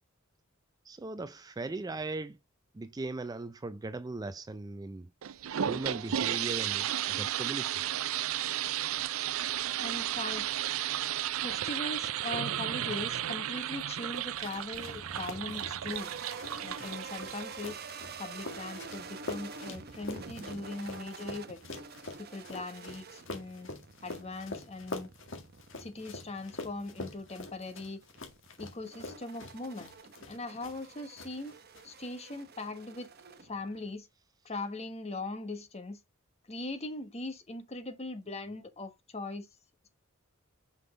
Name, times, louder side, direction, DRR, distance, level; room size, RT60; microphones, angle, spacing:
voice 1, 0.8-2.4 2.7-5.1 5.6-7.8 9.5-9.6 15.5-15.7 15.9-16.0 16.5-17.0, right 2 dB, 20° right, 0.4 m, -39 dB
sound 1, 5.2-17.7, right 11 dB, 85° right, 0.5 m, -33 dB
voice 2, 9.8-10.5 11.4-16.1 16.6-17.8 18.2-21.6 22.2-23.7 24.0-25.1 25.8-28.0 28.6-29.9 30.3-31.5 31.8-33.1 33.4-34.1 34.4-36.0 36.5-39.5, left 2 dB, 30° left, 1.3 m, -40 dB
sound 2, 14.1-30.9 31.2-31.8, left 2 dB, 65° left, 1.9 m, -45 dB
sound 3, 14.7-33.9, right 5 dB, 50° right, 0.8 m, -48 dB
5.9 x 5.4 x 3.2 m
head